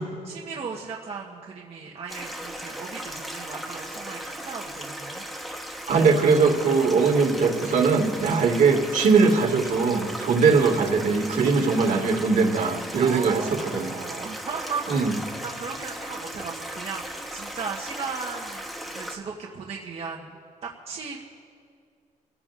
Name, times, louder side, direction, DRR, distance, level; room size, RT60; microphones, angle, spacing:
voice 1, 0.2-5.2 12.9-14.9 15.4-21.2, right 5 dB, 50° right, -2 dB, 1.2 m, -36 dB
Stream, 2.1-19.2, equal, ahead, 1.1 m, -37 dB
voice 2, 5.9-13.9 14.9-15.1, right 4 dB, 70° right, 2 dB, 2.0 m, -21 dB
29.5 x 16.0 x 2.5 m, 2.2 s
wide cardioid pair, 155°, 14 cm